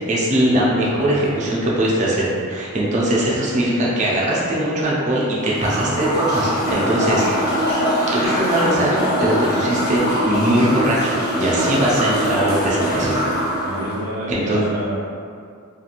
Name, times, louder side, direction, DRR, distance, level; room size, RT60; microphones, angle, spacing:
voice 1, 0.1-7.6 8.0-13.2 14.3-14.6, right 1 dB, 35° right, -6 dB, 0.5 m, -20 dB
voice 2, 0.7-1.3 13.6-15.0, right 1 dB, 85° right, -8 dB, 0.5 m, -28 dB
sound 1, 5.4-14.0, equal, 45° left, 0.7 m, -22 dB
2.9 x 2.3 x 2.4 m, 2.3 s
head